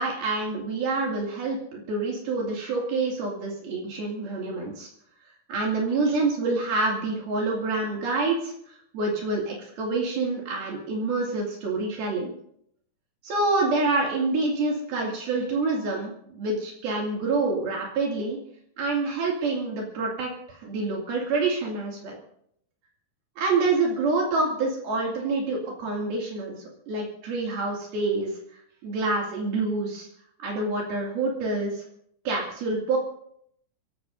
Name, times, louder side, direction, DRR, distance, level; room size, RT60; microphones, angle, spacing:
voice 1, 0.0-4.9 5.5-8.5 8.9-12.4 13.2-18.4 18.8-22.2 23.4-26.6 26.9-28.3 28.8-30.1 30.4-31.8 32.3-33.0, right 3 dB, 65° right, -2 dB, 4.2 m, -27 dB
26.0 x 17.0 x 2.7 m, 0.69 s
omnidirectional pair, 4.7 m